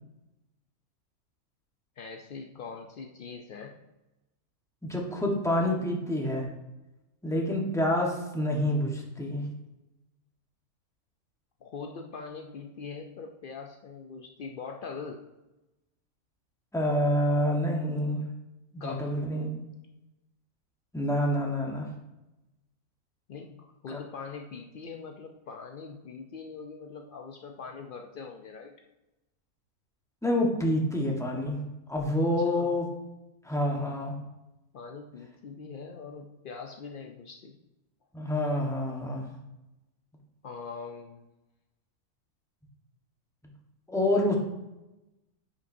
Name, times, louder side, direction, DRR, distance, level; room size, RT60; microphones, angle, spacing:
voice 1, 2.0-3.8 11.6-15.2 18.8-19.2 23.3-28.7 32.4-32.8 34.7-37.6 40.4-41.2 44.1-44.3, left 5 dB, 85° left, 3 dB, 0.4 m, -42 dB
voice 2, 4.8-6.5 7.2-9.4 16.7-18.2 18.7-19.6 20.9-21.9 23.9-24.0 30.2-31.6 31.9-32.8 33.4-34.1 38.1-39.2 43.9-44.4, left 1 dB, ahead, -1 dB, 1.0 m, -27 dB
9.7 x 5.9 x 2.7 m, 0.98 s
omnidirectional pair, 1.6 m